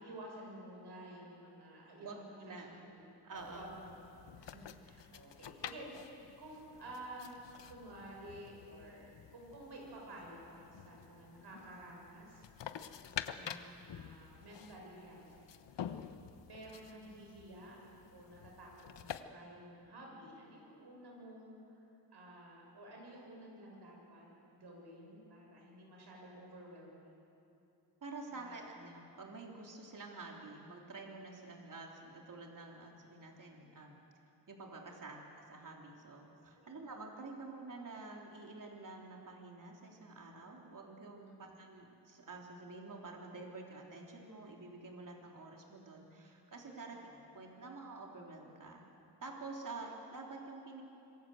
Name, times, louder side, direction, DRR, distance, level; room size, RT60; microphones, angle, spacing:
voice 1, 0.0-3.9 4.4-7.3 7.7-12.5 13.3-15.4 15.7-16.0 16.5-17.8 18.1-21.8 22.1-27.1 28.3-28.5 36.5-36.7 41.4-41.5 46.9-47.2, right 1 dB, 65° right, -1 dB, 7.3 m, -52 dB
voice 2, 2.0-2.7 3.2-3.7 28.0-34.0 34.5-47.1 47.3-48.9 49.2-50.8, right 3 dB, 45° right, 0 dB, 3.7 m, -49 dB
sound 1, 3.4-19.2, left 9 dB, 75° left, 1.1 m, -49 dB
26.0 x 21.5 x 8.0 m, 2.8 s
wide cardioid pair, 100°, 43 cm